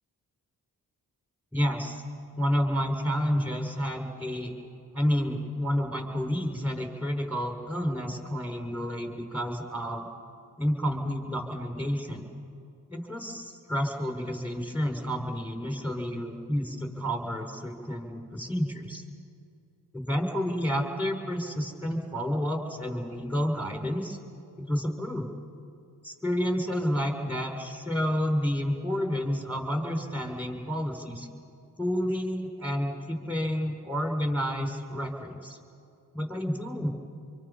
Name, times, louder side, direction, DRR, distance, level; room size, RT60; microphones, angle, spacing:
voice 1, 1.5-2.0 2.4-4.5 4.9-10.1 10.6-12.3 12.9-19.0 19.9-24.2 24.6-25.3 26.0-31.3 31.8-35.6 36.1-36.9, equal, 5° right, 2 dB, 6.0 m, -30 dB
26.5 x 24.0 x 5.8 m, 2.5 s
supercardioid pair, 45°, 39 cm